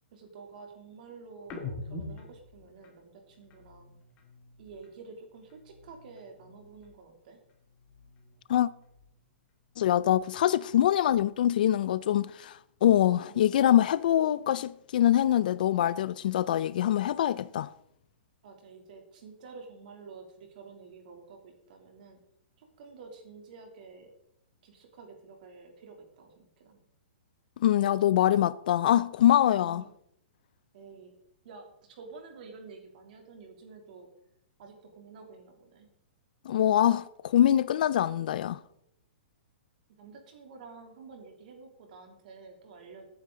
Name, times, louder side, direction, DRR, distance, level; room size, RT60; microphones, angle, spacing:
voice 1, 0.1-4.0 4.6-7.4 13.2-13.5 18.4-22.2 22.6-24.1 24.6-26.8 29.6-29.9 30.7-31.1 31.4-34.1 34.6-35.9 40.0-43.1, right 4 dB, 45° right, 2.9 m, -49 dB
sound 1, 1.4-5.0 5.3-7.2 7.4-9.3 9.7-11.5, left 3 dB, 20° left, 2.0 m, -47 dB
voice 2, 9.8-17.7 27.6-29.8 36.5-38.6, left 11 dB, 50° left, 0.4 m, -24 dB
14.5 x 9.5 x 3.8 m
hypercardioid pair, 170°, 6 cm